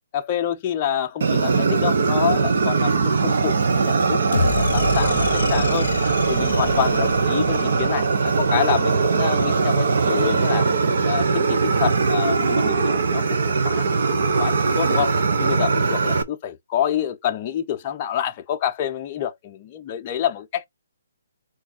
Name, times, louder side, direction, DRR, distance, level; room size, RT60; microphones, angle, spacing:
voice 1, 0.1-5.9 6.3-10.7 11.0-13.4 13.6-13.8 14.4-20.7, left 10 dB, 20° left, 0.6 m, -27 dB
Fire, 1.2-16.2, right 4 dB, 50° right, 0.9 m, -20 dB
sound 1, 4.3-8.7, left 5 dB, 65° left, 0.6 m, -28 dB
4.5 x 4.1 x 2.8 m
hypercardioid pair, 175°, 0 cm